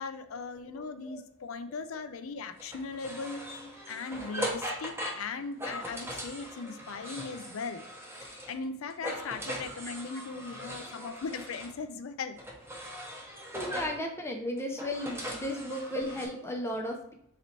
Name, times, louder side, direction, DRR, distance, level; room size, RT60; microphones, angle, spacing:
voice 1, 0.0-3.4 3.9-7.9 8.2-12.4 15.7-15.8, left 4 dB, 75° left, 10 dB, 0.4 m, -38 dB
voice 2, 0.7-1.2 3.3-3.7 6.6-6.7 10.1-10.2 10.6-11.1 13.5-17.1, left 1 dB, 10° left, 2 dB, 0.5 m, -36 dB
sound 1, 2.6-8.6 8.9-11.8 12.4-14.0 14.6-16.3, equal, 10° right, 0.9 m, -40 dB
4.0 x 3.0 x 4.2 m, 0.70 s
head